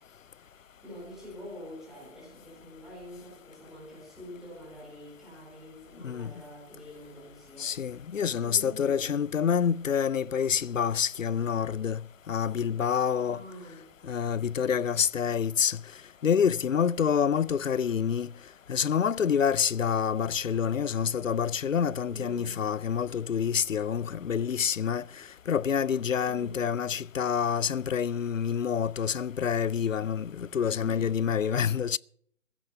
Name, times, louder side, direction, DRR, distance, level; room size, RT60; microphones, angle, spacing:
voice 1, 0.6-7.7 8.0-9.2 13.2-13.9 22.1-22.6 26.2-26.6, left 1 dB, ahead, 4.3 m, -46 dB
voice 2, 7.6-12.0 12.3-13.4 14.1-15.8 16.2-18.3 18.7-25.0 25.5-32.0, left 7 dB, 85° left, 0.5 m, -27 dB
16.0 x 10.5 x 5.7 m
figure-of-eight pair, 145°, 38 cm